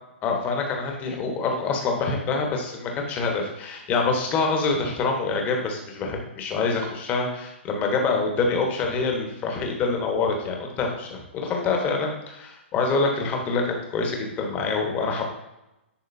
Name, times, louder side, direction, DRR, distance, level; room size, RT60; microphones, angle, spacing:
voice 1, 0.2-15.3, left 4 dB, 25° left, 2 dB, 1.2 m, -26 dB
10.0 x 3.8 x 2.7 m, 0.93 s
hypercardioid pair, 135°, 7 cm